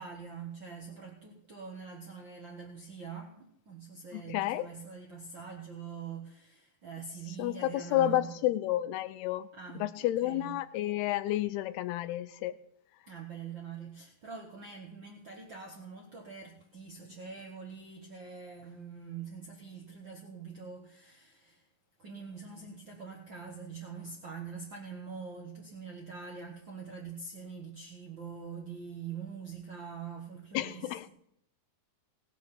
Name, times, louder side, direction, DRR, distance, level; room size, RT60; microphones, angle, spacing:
voice 1, 0.0-8.4 9.5-10.6 13.1-21.7 22.0-31.1, right 6 dB, 85° right, 0 dB, 1.0 m, -44 dB
voice 2, 4.1-4.7 7.4-9.5 9.8-12.5 30.5-31.1, left 14 dB, 85° left, 13 dB, 2.7 m, -30 dB
18.0 x 7.3 x 5.8 m, 0.74 s
omnidirectional pair, 4.5 m